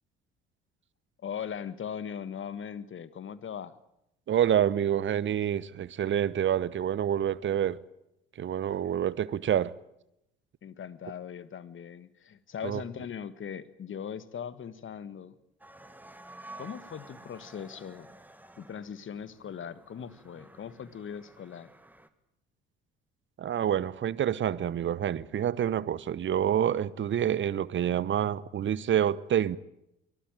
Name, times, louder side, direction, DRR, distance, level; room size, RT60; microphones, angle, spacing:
voice 1, 1.2-3.8 8.7-8.9 10.6-15.3 16.6-18.1 18.6-21.7, left 8 dB, 40° left, 1.6 m, -40 dB
voice 2, 4.3-7.8 8.4-9.7 12.6-12.8 23.4-29.6, right 10 dB, 40° right, 1.0 m, -27 dB
sound 1, 15.6-22.1, right 2 dB, 5° right, 2.1 m, -51 dB
23.5 x 17.5 x 9.1 m
hypercardioid pair, 55°, 31 cm